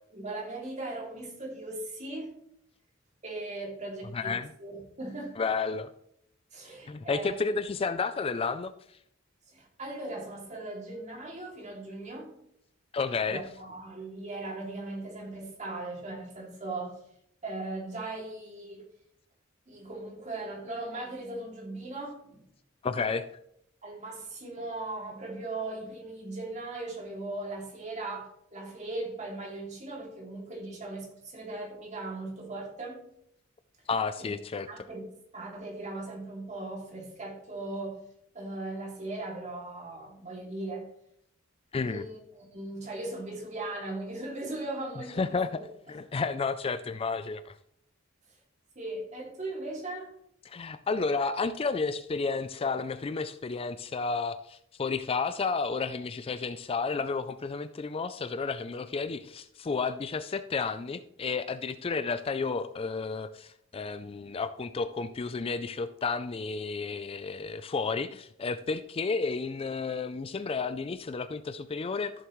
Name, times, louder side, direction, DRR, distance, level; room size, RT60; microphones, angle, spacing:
voice 1, 0.1-2.4 3.2-5.4 6.5-7.5 9.5-12.3 13.2-17.0 17.4-18.9 19.7-22.4 23.8-33.1 34.2-34.4 34.7-35.0 35.3-38.0 38.3-40.9 41.8-45.6 48.7-50.1, right 2 dB, 35° right, 2.6 m, -38 dB
voice 2, 4.1-4.5 5.4-5.9 6.9-8.7 12.9-13.4 22.8-23.3 33.9-34.7 41.7-42.0 45.2-45.5 45.9-47.6 50.5-72.1, left 4 dB, 30° left, 0.4 m, -31 dB
14.0 x 7.4 x 3.1 m
head